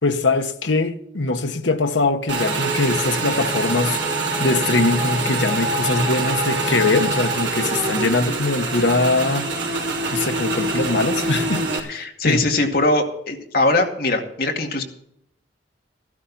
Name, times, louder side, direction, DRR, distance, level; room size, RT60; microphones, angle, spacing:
voice 1, 0.0-4.0 4.4-9.5 10.1-12.4, left 3 dB, 90° left, 1.2 m, -22 dB
Motorcycle / Engine, 2.3-11.8, right 2 dB, 70° right, 3.4 m, -24 dB
voice 2, 11.9-14.8, left 2 dB, 55° left, 2.2 m, -21 dB
15.0 x 12.5 x 4.2 m
head